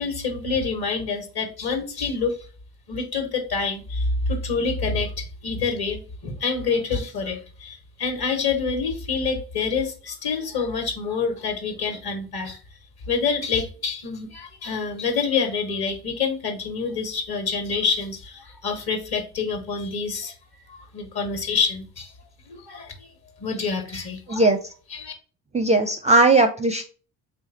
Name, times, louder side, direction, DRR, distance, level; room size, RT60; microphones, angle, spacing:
voice 1, 0.0-2.4 2.9-12.6 13.1-20.3 20.7-22.1 22.5-23.1 23.4-24.5 24.9-25.1, left 5 dB, 50° left, 5 dB, 1.4 m, -27 dB
voice 2, 25.5-26.8, right 2 dB, 15° right, 7 dB, 0.4 m, -18 dB
3.5 x 2.5 x 4.0 m, 0.38 s
hypercardioid pair, 55°, 48 cm